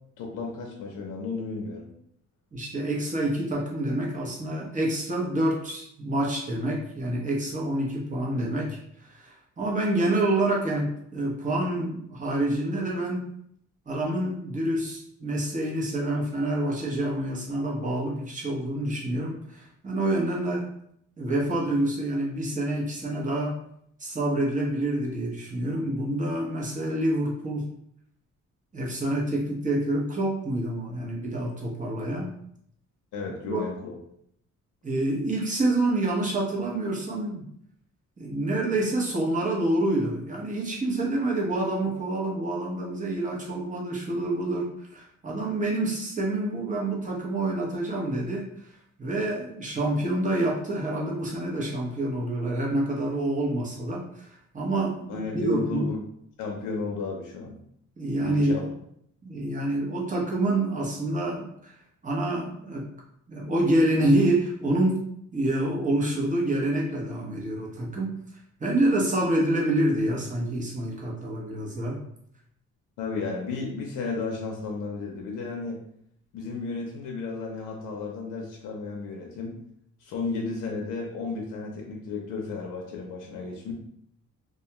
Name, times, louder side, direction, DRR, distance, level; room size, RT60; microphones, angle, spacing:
voice 1, 0.2-1.9 33.1-34.0 55.1-56.0 56.4-57.6 58.2-58.6 73.0-75.8 76.3-79.5 80.0-83.7, left 4 dB, 85° left, 0 dB, 0.6 m, -33 dB
voice 2, 2.5-13.3 13.9-20.6 21.2-23.5 24.0-27.7 28.7-32.3 33.4-33.6 34.8-37.4 38.2-48.4 49.0-55.9 58.0-58.7 59.2-61.7 62.0-62.9 63.3-65.0 65.3-68.1 68.6-72.0, right 1 dB, 25° right, -3 dB, 0.9 m, -27 dB
2.3 x 2.2 x 2.9 m, 0.71 s
cardioid pair, 90°, 30 cm